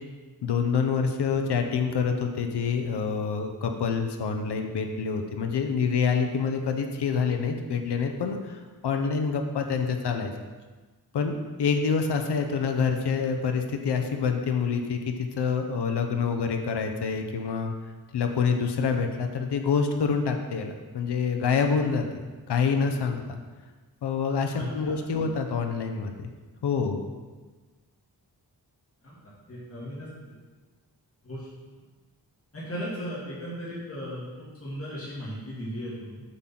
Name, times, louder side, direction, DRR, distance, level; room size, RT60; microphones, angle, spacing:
voice 1, 0.4-10.3 11.1-17.7 18.1-22.0 22.5-23.2 24.0-26.3 26.6-27.0, left 5 dB, 85° left, 4 dB, 0.8 m, -27 dB
voice 2, 24.6-25.0 29.0-29.2 29.5-30.1 31.2-31.5 32.5-36.2, equal, 35° left, -8 dB, 2.1 m, -36 dB
7.8 x 3.9 x 5.9 m, 1.3 s
wide cardioid pair, 150°, 39 cm